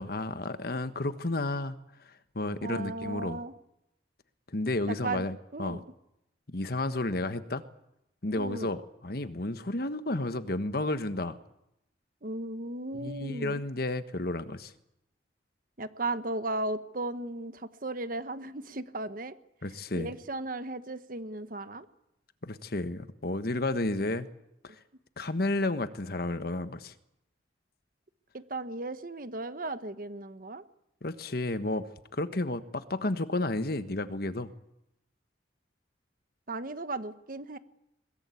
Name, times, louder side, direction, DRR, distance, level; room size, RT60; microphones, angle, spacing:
voice 1, 0.0-1.8 2.3-3.4 4.5-5.8 6.5-7.6 8.2-11.4 13.0-14.7 19.6-20.1 22.4-24.3 24.6-24.7 25.2-26.9 31.0-31.9 32.1-34.5, left 2 dB, 55° left, 11 dB, 1.3 m, -32 dB
voice 2, 2.6-3.5 4.9-5.3 5.5-5.8 8.3-8.7 12.2-13.6 15.8-19.3 19.9-21.9 28.3-30.6 36.5-37.6, right 2 dB, 50° right, 12 dB, 1.2 m, -36 dB
22.0 x 21.5 x 8.4 m, 0.84 s
head